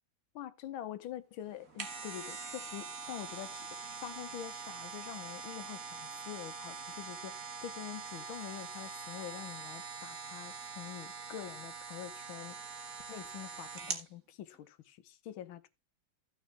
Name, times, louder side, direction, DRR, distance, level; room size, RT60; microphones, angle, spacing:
voice 1, 0.4-12.6 13.1-15.7, left 11 dB, 80° left, 1.7 m, -45 dB
sound 1, 1.5-14.1 14.5-14.6, right 5 dB, 45° right, 1.8 m, -44 dB
15.0 x 6.3 x 3.3 m
omnidirectional pair, 2.2 m